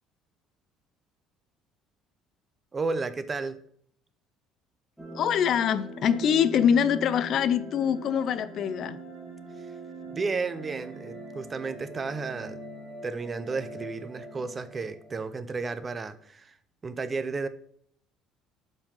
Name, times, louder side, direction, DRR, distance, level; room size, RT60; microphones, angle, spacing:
voice 1, 2.7-3.6 10.1-12.6 13.0-16.6 16.8-17.5, right 4 dB, 20° right, 0.5 m, -32 dB
sound 1, 5.0-15.2, right 1 dB, 5° right, 1.8 m, -42 dB
voice 2, 5.1-9.0, left 8 dB, 40° left, 0.4 m, -24 dB
7.2 x 5.4 x 5.4 m
cardioid pair, 165°, 0 cm